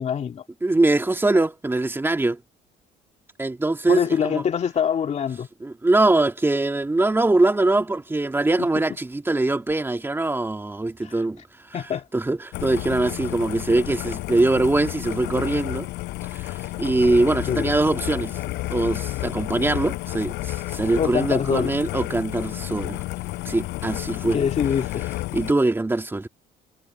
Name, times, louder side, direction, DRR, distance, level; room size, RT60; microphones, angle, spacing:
voice 1, 0.0-0.4 3.9-5.5 8.6-8.7 11.0-11.1 11.7-12.0 17.5-17.7 21.0-21.7 24.3-25.0, left 7 dB, 40° left, 2.3 m, -24 dB
voice 2, 0.6-2.4 3.4-4.4 5.6-11.4 12.1-15.9 16.3-18.4 18.7-23.0 23.4-24.4 25.3-26.3, right 2 dB, 15° right, 2.5 m, -22 dB
sound 1, 12.5-25.5, left 19 dB, 85° left, 6.1 m, -31 dB
cardioid pair, 110°, 17 cm